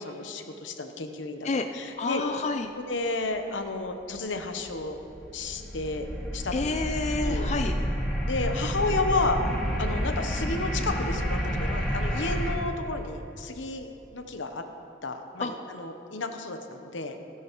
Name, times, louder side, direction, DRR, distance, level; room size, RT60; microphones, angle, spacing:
voice 1, 0.0-2.2 2.8-5.0 5.3-6.1 6.3-6.7 7.2-7.5 8.3-9.4 9.8-14.6 15.0-17.2, left 3 dB, 80° left, 6 dB, 0.9 m, -32 dB
voice 2, 2.0-2.7 6.5-7.7 15.4-15.5, left 3 dB, 35° left, 6 dB, 0.4 m, -29 dB
sound 1, 4.2-12.6, equal, 5° left, 1.8 m, -30 dB
16.0 x 10.5 x 3.1 m, 2.9 s
head